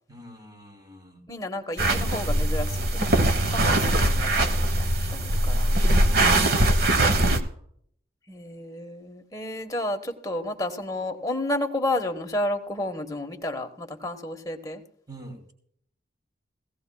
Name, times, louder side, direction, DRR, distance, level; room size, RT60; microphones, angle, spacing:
voice 1, 0.1-1.2 6.1-7.6 15.1-15.5, right 1 dB, 20° right, 3 dB, 2.7 m, -46 dB
voice 2, 1.3-5.7 8.3-14.8, left 1 dB, 20° left, 4 dB, 1.2 m, -31 dB
sound 1, 1.8-7.4, right 1 dB, 55° right, 1.1 m, -21 dB
17.0 x 17.0 x 2.3 m, 0.64 s
head